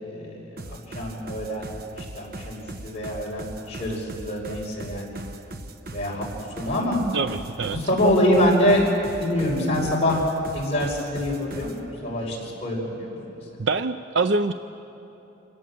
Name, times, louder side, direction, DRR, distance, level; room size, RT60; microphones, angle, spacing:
voice 1, 0.0-5.2 5.9-7.0 7.7-8.9 9.2-10.2 10.5-13.4, left 1 dB, 35° left, -3 dB, 5.4 m, -25 dB
sound 1, 0.6-11.8, right 2 dB, 50° right, 1.1 m, -39 dB
voice 2, 7.1-7.8 13.6-14.5, right 3 dB, 70° right, 9 dB, 0.5 m, -24 dB
27.0 x 17.5 x 7.6 m, 2.9 s
head